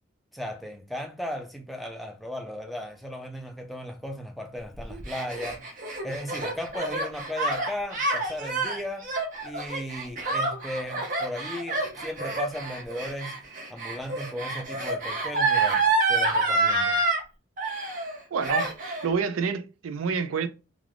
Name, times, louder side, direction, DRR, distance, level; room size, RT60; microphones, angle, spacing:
voice 1, 0.3-9.2 9.4-17.0, left 1 dB, ahead, 0.4 m, -36 dB
Gasp, 4.8-17.2 17.6-18.2 18.4-19.1, right 3 dB, 40° right, 0.7 m, -27 dB
voice 2, 18.3-20.5, right 5 dB, 90° right, 0.4 m, -28 dB
2.4 x 2.3 x 3.3 m
head